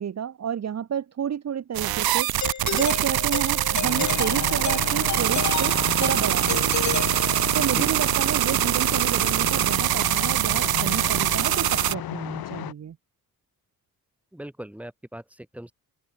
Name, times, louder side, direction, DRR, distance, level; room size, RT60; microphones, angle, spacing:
voice 1, 0.0-2.4 2.7-7.1 7.5-13.0, right 8 dB, 45° right, 1.3 m, -30 dB
sound 1, 1.7-11.9, right 14 dB, 85° right, 0.7 m, -24 dB
Doorbell, 2.4-7.8, left 8 dB, 55° left, 4.0 m, -32 dB
sound 2, 3.8-12.7, left 12 dB, 90° left, 1.5 m, -34 dB
voice 2, 14.3-15.7, right 1 dB, 5° right, 3.3 m, -39 dB
open air
wide cardioid pair, 160°, 35 cm